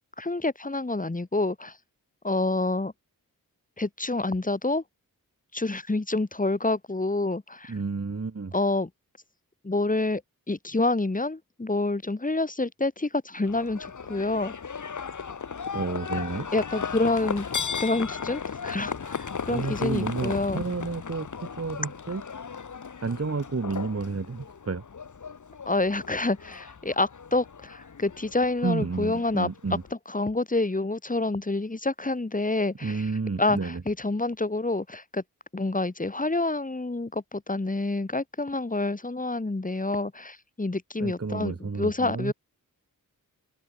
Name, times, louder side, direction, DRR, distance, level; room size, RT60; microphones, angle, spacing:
voice 1, 0.2-1.8 2.2-2.9 3.8-4.8 5.5-7.7 8.5-8.9 9.6-10.2 10.5-14.5 16.5-17.5 17.8-20.6 25.7-29.5 30.1-33.1 33.4-35.2 35.5-42.3, left 2 dB, 25° left, 2.7 m, -28 dB
voice 2, 7.7-8.5 15.7-16.5 19.5-22.2 23.0-24.8 28.6-29.8 32.8-33.8 41.0-42.3, right 4 dB, 45° right, 4.2 m, -31 dB
Livestock farm animals working animals, 13.5-29.9, left 6 dB, 60° left, 2.3 m, -36 dB
open air
cardioid pair, 70°, 35 cm